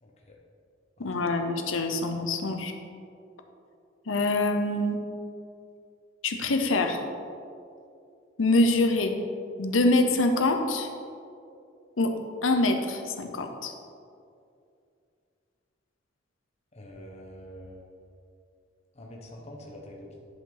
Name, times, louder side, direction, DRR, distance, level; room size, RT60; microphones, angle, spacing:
voice 1, 1.0-2.7 4.0-5.0 6.2-7.0 8.4-9.2 9.6-10.9 12.0-12.2 12.4-13.7, left 2 dB, 85° left, 5 dB, 0.8 m, -25 dB
voice 2, 16.7-17.8 18.9-20.1, equal, 35° left, -1 dB, 1.0 m, -45 dB
10.5 x 5.5 x 4.0 m, 2.5 s
head